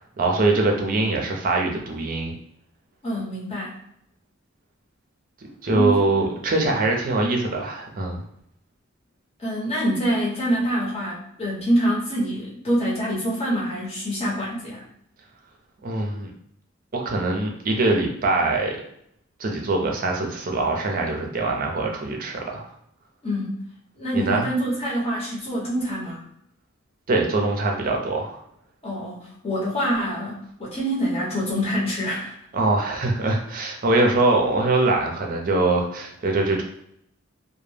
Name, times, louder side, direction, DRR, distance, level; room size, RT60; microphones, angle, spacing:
voice 1, 0.2-2.3 5.6-8.2 15.8-16.3 16.9-18.8 19.4-22.7 24.1-24.5 27.1-28.4 32.5-36.6, right 2 dB, 45° right, 1 dB, 0.5 m, -23 dB
voice 2, 3.0-3.7 5.7-6.2 9.4-14.8 23.2-23.6 23.9-26.2 28.8-32.3, equal, 30° left, -6 dB, 0.9 m, -26 dB
2.1 x 2.0 x 3.2 m, 0.72 s
head